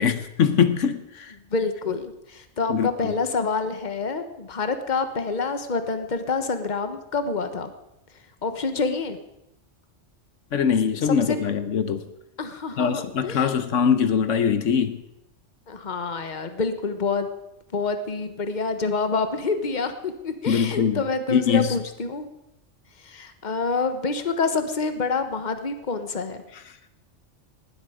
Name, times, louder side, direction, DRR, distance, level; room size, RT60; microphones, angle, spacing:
voice 1, 0.0-1.3 2.7-3.1 10.5-12.0 12.8-15.0 20.5-21.0 21.3-21.8 26.5-26.6, left 7 dB, 80° left, 1.2 m, -22 dB
voice 2, 1.5-7.7 8.4-9.2 11.0-11.4 12.4-13.5 15.7-17.3 17.7-22.3 23.0-26.4, left 4 dB, 40° left, 1.3 m, -27 dB
19.0 x 12.5 x 5.1 m
omnidirectional pair, 1.3 m